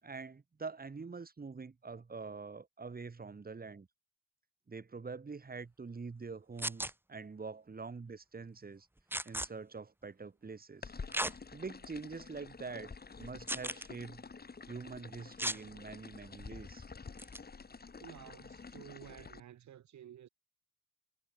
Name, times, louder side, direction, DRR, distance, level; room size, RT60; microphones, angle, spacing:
voice 1, 0.0-3.9 4.7-8.9 9.2-10.9 11.5-12.9 13.2-14.2 14.7-16.9, right 4 dB, 30° right, 6.7 m, -45 dB
sound 1, 6.6-6.9 9.1-9.5 11.1-11.3 12.0-12.1 13.5-13.9 15.4-15.6 17.2-17.4, right 1 dB, 5° right, 3.9 m, -35 dB
sound 2, 10.8-19.4, left 4 dB, 30° left, 5.9 m, -49 dB
voice 2, 18.0-20.3, right 11 dB, 65° right, 3.8 m, -53 dB
cardioid pair, 90°, 30 cm